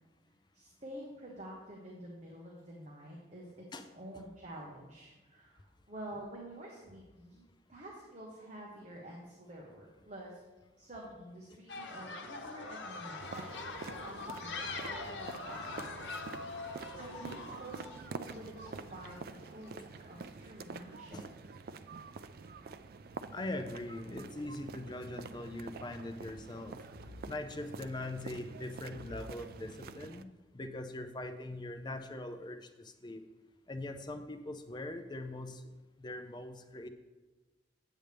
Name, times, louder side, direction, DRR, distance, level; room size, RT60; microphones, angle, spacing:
voice 1, 0.5-7.4 7.7-10.4 10.8-16.2 17.0-21.2, right 1 dB, 40° right, -3 dB, 1.2 m, -49 dB
sound 1, 11.7-19.7, left 3 dB, 90° left, 0.9 m, -43 dB
sound 2, 13.2-30.2, right 4 dB, 55° right, 0.3 m, -47 dB
voice 2, 23.3-26.8 27.3-30.3 30.5-33.2 33.7-35.6 36.0-36.9, left 2 dB, 25° left, 7 dB, 0.5 m, -41 dB
8.8 x 7.9 x 3.4 m, 1.2 s
head